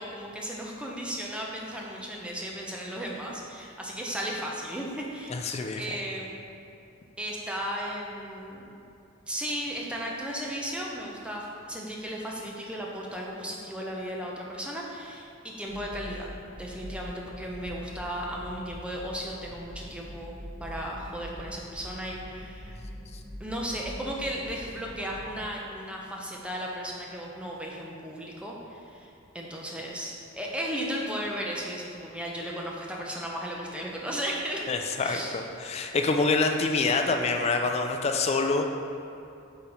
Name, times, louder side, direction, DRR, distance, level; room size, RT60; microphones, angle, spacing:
voice 1, 0.0-5.5 5.8-6.4 7.2-8.7 9.3-20.3 20.6-22.8 23.4-34.6 35.0-35.4, equal, 5° right, -2 dB, 0.6 m, -35 dB
voice 2, 5.3-5.8 34.7-38.7, left 3 dB, 30° left, 4 dB, 0.4 m, -26 dB
sound 1, 15.7-25.4, equal, 75° right, 1.4 m, -43 dB
5.7 x 3.9 x 4.3 m, 2.7 s
head